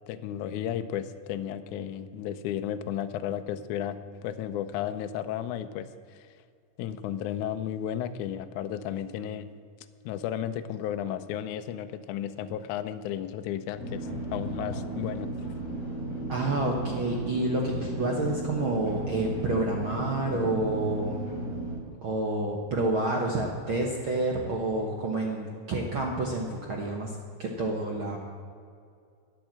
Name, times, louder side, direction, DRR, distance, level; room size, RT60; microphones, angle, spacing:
voice 1, 0.1-6.3 6.8-9.5 10.1-15.3, left 10 dB, 75° left, 10 dB, 1.8 m, -33 dB
sound 1, 13.8-21.8, right 2 dB, 50° left, 4.8 m, -35 dB
voice 2, 16.3-21.2 22.0-28.2, right 2 dB, 60° right, 0 dB, 1.3 m, -29 dB
13.5 x 9.2 x 7.5 m, 2.3 s
omnidirectional pair, 4.1 m